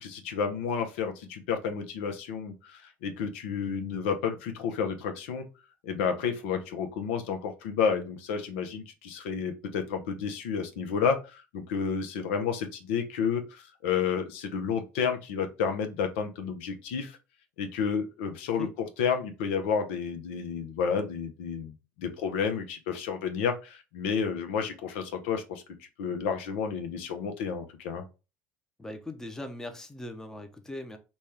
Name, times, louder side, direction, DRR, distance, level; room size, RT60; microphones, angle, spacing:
voice 1, 0.0-5.5 5.8-17.2 17.6-25.6 26.0-28.1, left 6 dB, 85° left, 0.7 m, -31 dB
voice 2, 28.8-31.0, left 1 dB, 10° left, 0.7 m, -40 dB
4.1 x 2.3 x 3.3 m
supercardioid pair, 100°, 6 cm